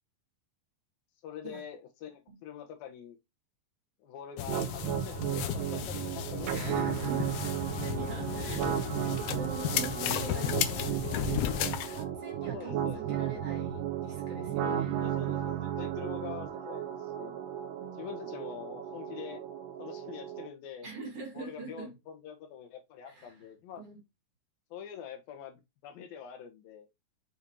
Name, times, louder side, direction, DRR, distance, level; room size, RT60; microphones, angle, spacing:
voice 1, 1.2-3.2 4.0-7.0 8.5-8.7 12.4-13.0 15.0-17.4 17.9-19.4 19.8-20.9 21.3-23.8 24.7-26.9, left 8 dB, 70° left, 2.8 m, -45 dB
sound 1, 4.4-12.0, left 11 dB, 85° left, 1.9 m, -34 dB
sound 2, 4.5-20.5, right 10 dB, 90° right, 2.8 m, -34 dB
voice 2, 6.5-7.5 7.8-15.1 17.8-18.0 20.8-21.9 23.0-23.5 23.8-24.0, right 3 dB, 50° right, 1.9 m, -44 dB
6.8 x 5.0 x 2.9 m
omnidirectional pair, 4.7 m